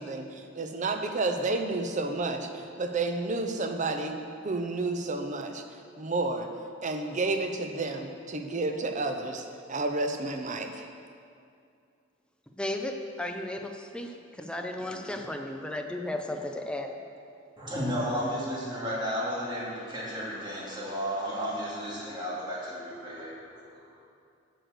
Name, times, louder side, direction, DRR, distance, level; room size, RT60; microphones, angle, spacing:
voice 1, 0.0-4.1 4.4-5.6 6.0-6.5 6.8-10.9, right 3 dB, 40° right, 5 dB, 0.7 m, -31 dB
voice 2, 12.6-17.0, left 1 dB, 5° left, 3 dB, 0.6 m, -35 dB
voice 3, 17.6-24.0, equal, 25° right, -7 dB, 2.4 m, -33 dB
7.8 x 6.6 x 6.5 m, 2.4 s
head